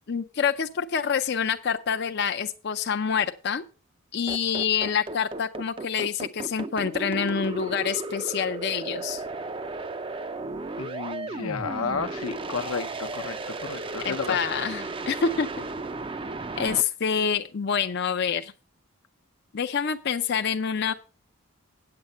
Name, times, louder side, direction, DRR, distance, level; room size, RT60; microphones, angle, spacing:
voice 1, 0.1-3.6 4.1-9.2 14.0-15.5 16.6-18.5 19.5-20.9, left 6 dB, 50° left, 0.5 m, -27 dB
sound 1, 4.3-16.8, right 3 dB, 25° right, 0.4 m, -34 dB
voice 2, 10.8-14.4, left 5 dB, 80° left, 0.8 m, -32 dB
8.8 x 7.8 x 5.4 m
head